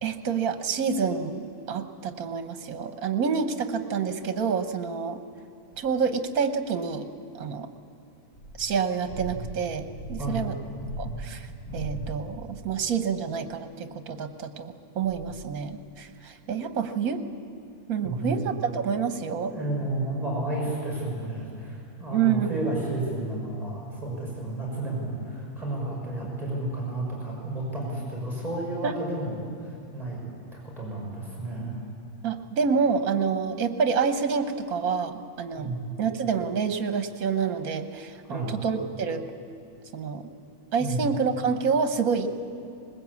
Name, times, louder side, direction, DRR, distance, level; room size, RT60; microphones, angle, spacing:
voice 1, 0.0-5.2 5.8-7.1 7.3-7.7 8.6-10.6 11.0-11.5 11.7-17.2 17.9-19.5 22.1-22.6 28.8-29.2 32.2-39.2 39.9-40.3 40.7-42.3, right 6 dB, 70° right, 9 dB, 1.6 m, -28 dB
sound 1, 5.7-5.8 8.3-12.5 15.0-15.8, right 1 dB, 15° left, 6.8 m, -38 dB
voice 2, 10.2-10.5 18.0-18.5 19.5-30.2 30.5-31.8 35.6-36.0 38.3-38.6 40.8-41.0, right 2 dB, 25° right, -4 dB, 6.3 m, -32 dB
20.5 x 20.0 x 8.4 m, 2.5 s
omnidirectional pair, 1.6 m